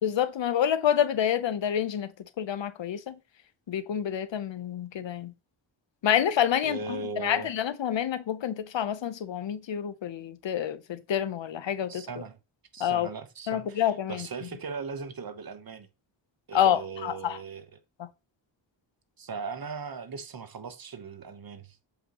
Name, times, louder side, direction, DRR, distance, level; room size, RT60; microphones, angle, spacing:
voice 1, 0.0-3.2 3.7-5.3 6.0-12.1 12.8-13.1 13.5-14.3 16.5-17.4 18.0-18.1, left 9 dB, 70° left, 0.8 m, -28 dB
voice 2, 6.6-7.5 11.9-12.4 12.7-15.9 16.5-17.8 19.2-21.8, right 5 dB, 50° right, 1.0 m, -38 dB
7.7 x 5.1 x 2.9 m
wide cardioid pair, 80°, 46 cm